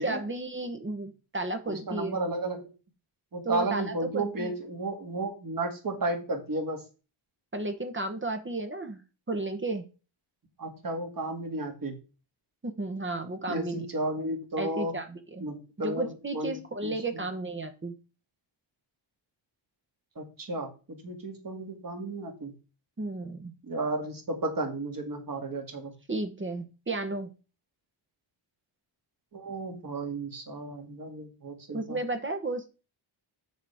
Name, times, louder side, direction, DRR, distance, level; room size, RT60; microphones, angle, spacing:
voice 1, 0.0-2.2 3.4-4.5 7.5-9.0 9.3-9.9 12.6-13.9 14.6-15.5 15.8-17.9 23.0-23.5 26.1-27.3 31.7-32.7, right 2 dB, 25° right, 7 dB, 1.0 m, -33 dB
voice 2, 1.7-2.7 3.3-6.8 10.6-12.0 13.5-14.9 15.4-16.1 16.3-16.5 16.8-17.2 20.2-22.5 23.6-25.9 29.3-32.0, right 2 dB, 40° right, 4 dB, 2.0 m, -33 dB
8.1 x 6.6 x 3.5 m, 0.32 s
wide cardioid pair, 155°, 49 cm